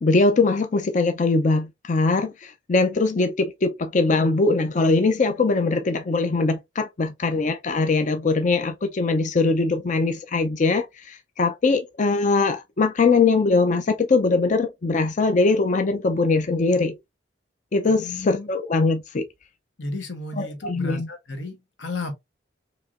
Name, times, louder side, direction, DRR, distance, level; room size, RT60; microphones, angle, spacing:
voice 1, 0.0-16.9 17.7-19.2 20.4-21.1, left 3 dB, 40° left, 0.4 m, -21 dB
voice 2, 17.8-18.5 19.8-22.1, left 2 dB, 70° left, 1.4 m, -33 dB
4.6 x 2.9 x 2.4 m
head